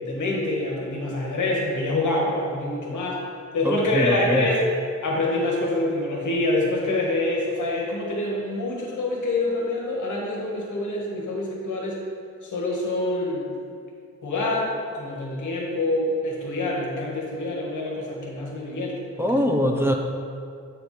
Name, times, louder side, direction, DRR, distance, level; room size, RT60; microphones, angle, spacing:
voice 1, 0.0-3.2 3.5-4.6 5.0-12.0 12.4-13.5 14.2-19.4, left 2 dB, 80° left, -2 dB, 1.5 m, -26 dB
voice 2, 3.6-4.5 19.2-19.9, equal, 10° right, 2 dB, 0.4 m, -22 dB
8.1 x 4.6 x 4.2 m, 2.3 s
wide cardioid pair, 175°, 30 cm